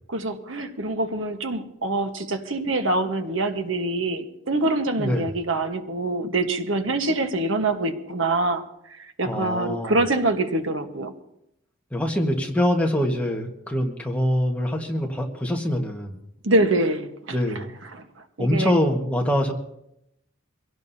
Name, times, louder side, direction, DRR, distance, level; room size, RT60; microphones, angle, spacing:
voice 1, 0.1-8.6 8.9-11.1 16.4-17.6 17.9-18.0 18.4-18.7, right 2 dB, 70° right, 6 dB, 1.3 m, -25 dB
voice 2, 5.0-5.3 9.2-10.0 11.9-16.2 17.3-17.7 18.4-19.5, left 1 dB, 5° left, 1 dB, 1.5 m, -24 dB
24.5 x 17.0 x 2.8 m, 0.80 s
head